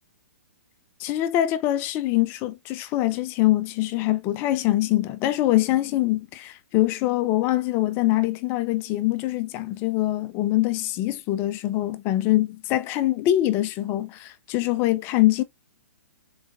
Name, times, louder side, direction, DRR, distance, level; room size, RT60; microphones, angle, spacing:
voice 1, 1.0-15.4, left 15 dB, 30° left, 0.4 m, -24 dB
4.7 x 3.9 x 2.5 m
figure-of-eight pair, 115°, 8 cm